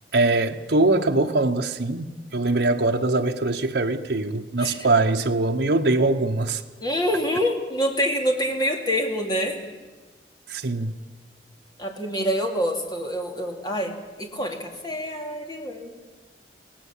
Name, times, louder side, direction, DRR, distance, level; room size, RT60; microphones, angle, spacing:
voice 1, 0.1-6.6 10.5-11.0, right 2 dB, 70° right, 1.0 m, -22 dB
voice 2, 6.8-9.6 11.8-16.1, equal, 25° left, 2.7 m, -26 dB
24.0 x 17.5 x 7.3 m
head